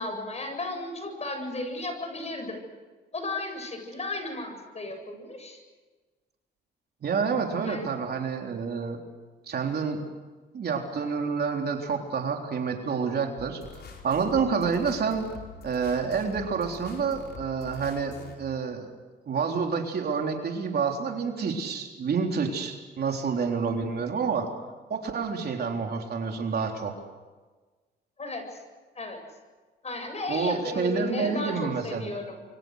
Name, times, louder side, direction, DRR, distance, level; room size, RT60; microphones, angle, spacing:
voice 1, 0.0-2.6 3.1-5.6 7.6-7.9 28.2-28.6 29.0-29.2 29.8-32.4, left 2 dB, 35° left, 5 dB, 7.7 m, -34 dB
voice 2, 7.0-9.0 9.5-10.0 10.5-13.6 14.0-15.3 15.6-18.9 19.3-24.5 24.9-26.9 30.3-32.1, right 5 dB, 55° right, 2 dB, 3.8 m, -28 dB
sound 1, 13.4-18.4, left 5 dB, 55° left, 5.3 m, -45 dB
28.5 x 24.0 x 6.6 m, 1.3 s
cardioid pair, 90°, 20 cm